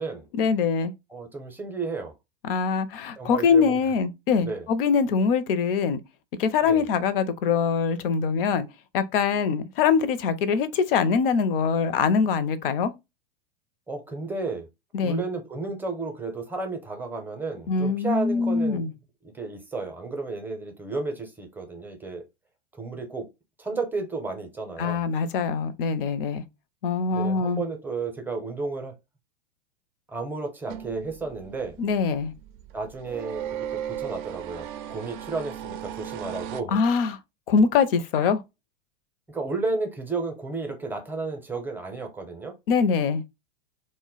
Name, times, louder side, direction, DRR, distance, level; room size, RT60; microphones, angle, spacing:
voice 1, 0.3-0.9 2.4-6.0 6.4-8.7 8.9-12.9 14.9-15.2 17.7-18.9 24.8-26.4 26.8-27.6 31.8-32.3 36.7-37.2 37.5-38.4 42.7-43.2, left 5 dB, 70° left, 0.5 m, -23 dB
voice 2, 1.1-2.1 3.2-3.8 4.4-4.7 6.6-6.9 13.9-14.7 15.0-18.9 19.3-22.2 22.7-23.3 23.6-25.0 27.1-28.9 30.1-31.8 32.7-36.8 39.3-42.6, right 3 dB, 5° right, 0.5 m, -32 dB
sound 1, 30.7-36.6, right 10 dB, 60° right, 0.4 m, -37 dB
2.1 x 2.1 x 3.7 m
hypercardioid pair, 115°, 29 cm